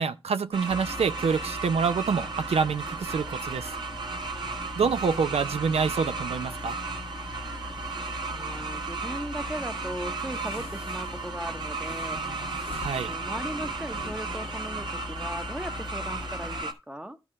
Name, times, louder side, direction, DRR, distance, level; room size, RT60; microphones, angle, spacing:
voice 1, 0.0-3.8 4.7-6.8 12.1-13.2, right 5 dB, 80° right, 0.5 m, -27 dB
sound 1, 0.5-16.7, right 3 dB, 45° right, 1.3 m, -35 dB
sound 2, 0.7-16.6, left 3 dB, 70° left, 1.0 m, -42 dB
voice 2, 8.3-12.4 12.9-17.2, right 1 dB, 10° right, 0.8 m, -38 dB
13.0 x 4.8 x 3.7 m
wide cardioid pair, 100°, 10 cm